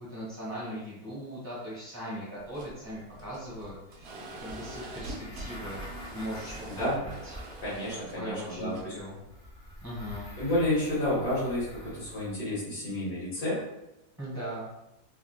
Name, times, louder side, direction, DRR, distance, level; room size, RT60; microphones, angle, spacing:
voice 1, 0.1-5.8 6.1-7.3 8.1-9.2 9.8-10.3 14.2-14.7, equal, 20° right, -10 dB, 1.0 m, -39 dB
sound 1, 2.5-10.3, right 2 dB, 85° right, 0.5 m, -45 dB
sound 2, 4.9-8.2 9.3-12.4, equal, 30° left, 0.6 m, -46 dB
voice 2, 6.7-7.0 7.6-8.9 10.4-13.6, left 1 dB, 85° left, -10 dB, 1.7 m, -30 dB
3.5 x 2.4 x 2.3 m, 0.91 s
omnidirectional pair, 1.7 m